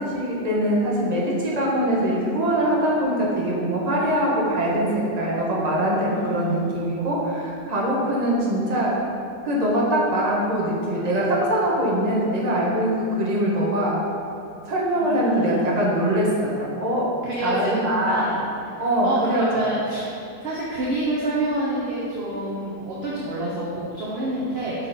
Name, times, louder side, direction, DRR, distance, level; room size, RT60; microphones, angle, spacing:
voice 1, 0.0-8.9 9.4-14.0 14.6-17.1 17.4-18.3 18.8-19.4, right 1 dB, 25° right, -5 dB, 1.2 m, -23 dB
voice 2, 6.1-6.9 14.9-15.8 17.2-18.4 19.0-20.1 20.4-24.9, right 1 dB, 45° right, -6 dB, 1.0 m, -28 dB
6.0 x 5.9 x 4.1 m, 2.8 s
omnidirectional pair, 1.8 m